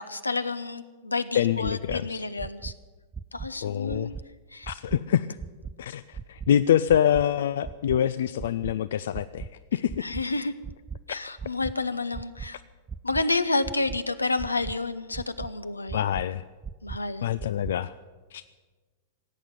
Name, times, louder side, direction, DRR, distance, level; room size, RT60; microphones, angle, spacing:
voice 1, 0.0-2.7 3.3-4.1 4.5-4.7 10.0-10.5 11.1-12.6 13.0-16.0 16.8-17.3, left 3 dB, 85° left, 12 dB, 0.8 m, -30 dB
voice 2, 1.3-2.2 3.6-4.1 4.7-5.3 5.8-9.9 11.1-11.2 15.9-16.4 17.2-17.9 18.3-18.4, left 10 dB, 60° left, 14 dB, 0.4 m, -25 dB
sound 1, 1.6-2.0 2.4-2.7 3.1-3.5 3.9-4.2 4.6-5.0 5.4-5.7 6.1-6.5 6.9-7.2 7.6-8.0 8.4-8.7 9.1-9.5 9.9-10.2 10.6-11.0 11.4-11.7 12.1-12.5 12.9-13.2 13.6-14.0 14.4-14.7 15.1-15.5 15.9-16.2 16.6-17.0 17.4-17.7, right 6 dB, 15° right, 0.4 m, -37 dB
17.0 x 8.8 x 9.3 m, 1.3 s
figure-of-eight pair, 95°, 0 cm